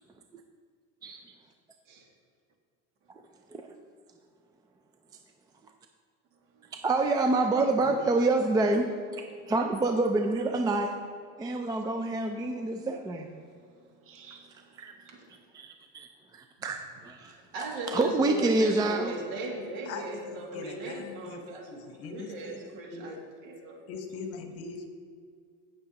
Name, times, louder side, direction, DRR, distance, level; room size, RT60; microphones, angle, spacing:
voice 1, 6.7-8.9 9.5-10.9 11.4-13.3 14.8-14.9 15.5-16.1 16.3-17.3 17.9-19.1, right 2 dB, 15° right, 5 dB, 0.4 m, -27 dB
voice 2, 11.4-11.8 15.0-15.3 17.2-23.8, right 1 dB, 75° right, -1 dB, 2.4 m, -38 dB
voice 3, 13.4-15.3, right 5 dB, 45° right, 3 dB, 1.5 m, -57 dB
voice 4, 19.9-23.2 23.9-24.8, left 4 dB, 50° left, 5 dB, 1.2 m, -42 dB
16.0 x 6.6 x 2.9 m, 2.1 s
cardioid pair, 135°, 30 cm